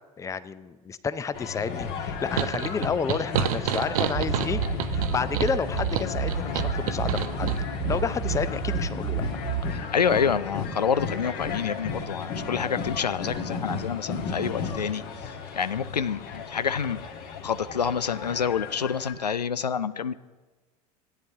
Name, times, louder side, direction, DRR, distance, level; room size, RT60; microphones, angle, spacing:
voice 1, 0.2-4.6 4.9-7.5 7.9-9.2, left 5 dB, 15° left, 14 dB, 0.5 m, -30 dB
sound 1, 1.3-19.1, left 6 dB, 45° left, 1.6 m, -34 dB
sound 2, 2.4-7.6, right 10 dB, 65° right, 0.7 m, -29 dB
sound 3, 4.1-9.7, right 7 dB, 80° right, 1.4 m, -30 dB
voice 2, 9.7-15.0 15.6-17.0 17.4-20.1, left 7 dB, 85° left, 15 dB, 0.4 m, -27 dB
16.5 x 9.4 x 3.5 m, 1.3 s
figure-of-eight pair, 80°, 20 cm